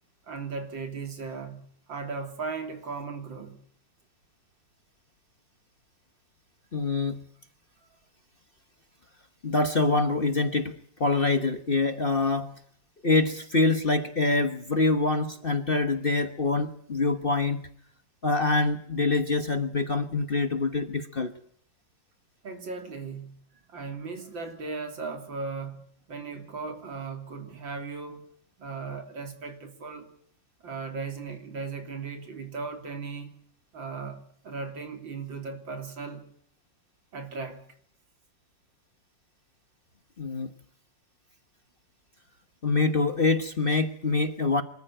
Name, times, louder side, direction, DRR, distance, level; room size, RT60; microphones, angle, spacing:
voice 1, 0.3-1.6 1.9-3.5 22.4-23.3 23.7-28.3 28.6-30.1 30.6-33.3 33.7-36.2 37.1-37.6, right 4 dB, 80° right, 3.9 m, -37 dB
voice 2, 6.7-7.2 9.4-10.7 11.0-12.5 13.0-17.7 18.2-21.3 40.2-40.5 42.6-44.6, left 3 dB, 35° left, 1.2 m, -25 dB
25.5 x 14.0 x 9.0 m
omnidirectional pair, 2.1 m